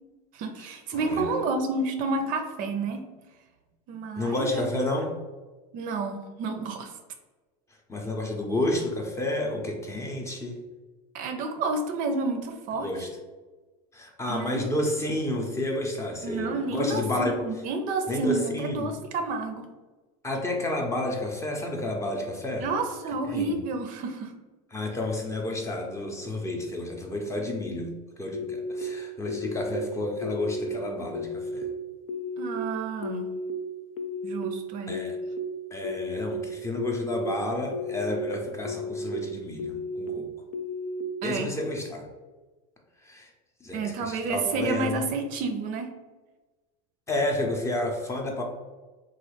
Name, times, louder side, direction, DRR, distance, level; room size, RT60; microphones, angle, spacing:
voice 1, 0.3-3.1 3.9-4.7 5.7-6.9 11.1-13.1 14.3-14.7 16.2-19.7 22.6-24.3 32.4-33.3 34.2-35.0 41.2-41.5 43.7-45.9, right 3 dB, 50° right, 5 dB, 0.4 m, -30 dB
voice 2, 0.9-1.3 4.2-5.1 7.9-10.6 12.8-13.1 13.9-17.3 18.1-18.9 20.2-22.7 23.3-23.6 24.7-27.9 28.2-31.7 34.9-35.2 35.7-40.3 41.2-42.1 43.0-43.3 43.6-45.1 47.1-48.4, left 1 dB, 15° left, 1 dB, 0.6 m, -30 dB
sound 1, 28.3-28.8 29.3-29.8 30.2-30.7 31.1-31.6 32.1-32.6 33.0-33.5 34.0-34.4 34.9-35.4 35.8-36.3 36.8-37.3 37.7-38.2 38.6-39.1 39.6-40.1 40.5-41.0, left 3 dB, 75° left, 0.5 m, -34 dB
3.0 x 2.3 x 3.2 m, 1.3 s
hypercardioid pair, 100°, 18 cm